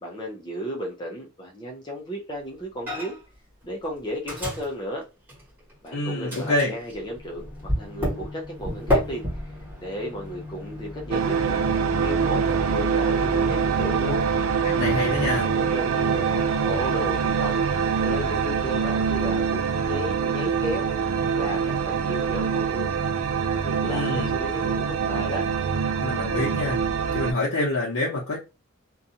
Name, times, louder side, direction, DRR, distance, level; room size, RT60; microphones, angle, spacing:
voice 1, 0.0-3.2 3.6-5.1 5.8-9.5 9.8-11.6 12.0-14.2 15.4-17.6 18.0-19.6 19.9-20.9 21.3-23.0 23.6-25.5, equal, 20° left, 0.5 m, -34 dB
Microwave oven, 2.9-3.4 3.6-5.9 6.3-17.3, left 1 dB, 10° right, 1.2 m, -33 dB
voice 2, 5.9-6.7 14.6-15.5 23.8-24.3 26.0-26.8 27.1-28.4, left 2 dB, 85° left, 0.8 m, -26 dB
sound 1, 11.1-27.3, right 6 dB, 80° right, 0.4 m, -24 dB
2.6 x 2.3 x 2.6 m
head